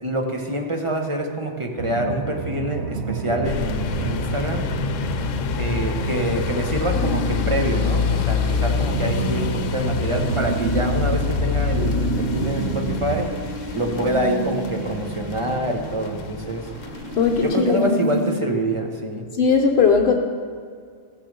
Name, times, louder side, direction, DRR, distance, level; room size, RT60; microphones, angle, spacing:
voice 1, 0.0-4.7 5.6-13.3 13.7-16.7 17.4-19.3, right 1 dB, 25° right, 2 dB, 1.0 m, -26 dB
sound 1, 1.8-13.3, right 7 dB, 65° right, 0.8 m, -30 dB
sound 2, 3.4-17.6, left 7 dB, 90° left, 1.0 m, -27 dB
sound 3, 6.9-18.4, right 1 dB, 90° right, 1.3 m, -30 dB
voice 2, 17.2-17.9 19.4-20.1, left 5 dB, 60° left, 2 dB, 1.0 m, -18 dB
15.0 x 6.5 x 6.7 m, 2.1 s
omnidirectional pair, 1.3 m